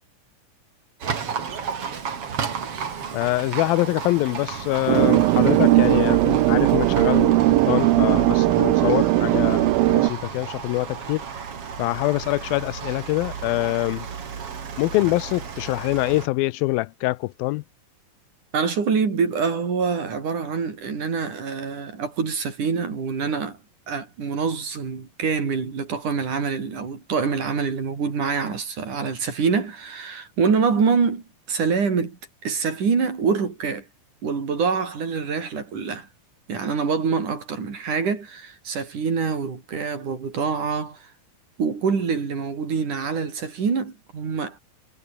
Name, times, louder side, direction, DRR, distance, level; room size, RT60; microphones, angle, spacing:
Livestock farm animals working animals, 1.0-16.3, right 6 dB, 45° right, 3.2 m, -33 dB
voice 1, 3.1-11.2 11.8-14.1 14.8-17.6, left 19 dB, 85° left, 2.4 m, -24 dB
sound 1, 4.9-10.1, right 17 dB, 80° right, 2.7 m, -18 dB
voice 2, 18.5-23.6 23.9-33.9 34.2-36.1 36.5-41.1 41.6-44.6, right 5 dB, 60° right, 5.7 m, -25 dB
omnidirectional pair, 4.2 m